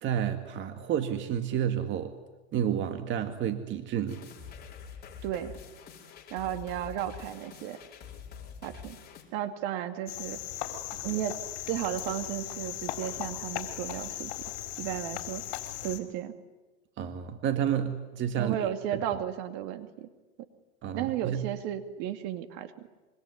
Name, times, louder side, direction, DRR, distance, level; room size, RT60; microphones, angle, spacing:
voice 1, 0.0-2.2 2.5-4.2 17.0-19.0 20.8-21.5, right 9 dB, 35° right, 7 dB, 2.0 m, -30 dB
sound 1, 4.1-9.2, left 6 dB, 30° left, 5.4 m, -46 dB
voice 2, 5.2-5.5 6.3-7.8 8.6-9.0 9.3-10.4 11.0-11.4 11.7-14.3 14.8-15.4 15.8-16.4 18.4-20.1 20.4-20.5 20.9-22.9, right 11 dB, 55° right, 8 dB, 2.5 m, -34 dB
Cricket, 10.1-16.0, left 14 dB, 60° left, 4.2 m, -37 dB
26.0 x 24.0 x 9.6 m, 1.2 s
hypercardioid pair, 115°, 34 cm